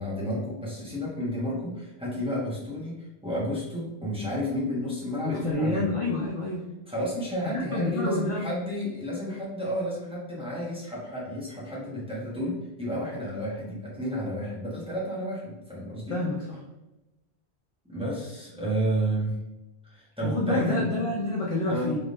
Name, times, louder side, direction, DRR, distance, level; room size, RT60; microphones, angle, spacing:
voice 1, 0.0-2.9 3.2-5.9 6.9-12.5 12.8-16.2 17.9-19.3 19.8-20.9 21.7-21.9, equal, 5° right, -7 dB, 1.0 m, -31 dB
voice 2, 5.2-6.6 7.7-8.5 16.1-16.4 20.2-22.0, left 2 dB, 40° left, -4 dB, 0.6 m, -28 dB
3.5 x 3.2 x 2.6 m, 0.99 s
omnidirectional pair, 1.1 m